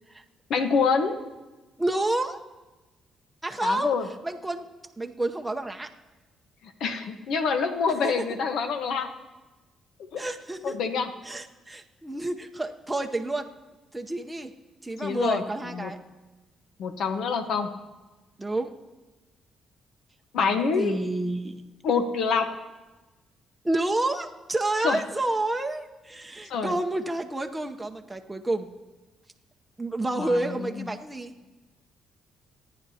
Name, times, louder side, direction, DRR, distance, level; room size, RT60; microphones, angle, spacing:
voice 1, 0.5-1.2 3.6-4.1 6.8-9.1 10.1-10.2 10.6-11.1 15.0-15.9 16.8-17.7 20.3-21.0 21.8-22.5 24.8-25.0 26.5-26.7 30.2-30.9, left 5 dB, 75° left, 7 dB, 1.1 m, -26 dB
voice 2, 1.8-2.4 3.4-4.0 4.2-4.7 5.0-5.9 8.0-8.1 10.2-10.8 11.2-13.5 13.9-14.5 14.8-16.0 18.4-18.7 20.3-21.6 23.6-28.7 29.8-31.3, right 2 dB, 10° right, 3 dB, 0.7 m, -29 dB
26.0 x 9.6 x 2.8 m, 1.2 s
cardioid pair, 90°, 0 cm